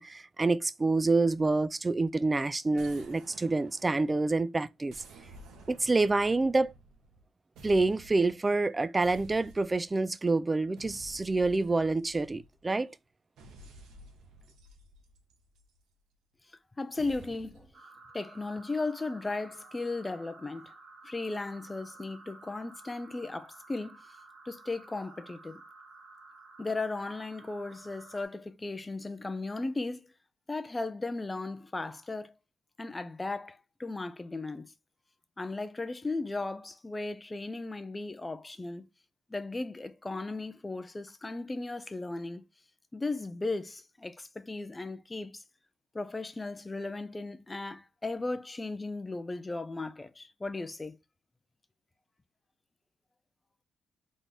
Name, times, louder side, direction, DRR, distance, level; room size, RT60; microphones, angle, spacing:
voice 1, 0.0-5.0 5.7-6.7 7.6-12.9, right 3 dB, 20° right, 0.3 m, -27 dB
sound 1, 2.7-4.3 4.9-7.2 7.6-8.4 9.0-10.0 10.8-12.6 13.4-15.8 17.0-17.7, right 2 dB, 85° right, 1.3 m, -53 dB
voice 2, 16.8-17.7 18.1-20.7 21.0-24.0 24.5-25.6 26.6-30.1 30.5-32.3 32.8-34.7 35.4-38.9 39.3-42.5 42.9-45.4 45.9-51.0, left 3 dB, 20° left, 0.6 m, -36 dB
sound 2, 17.7-28.2, right 3 dB, 50° right, 1.4 m, -53 dB
4.0 x 3.7 x 3.4 m
cardioid pair, 90°, 0 cm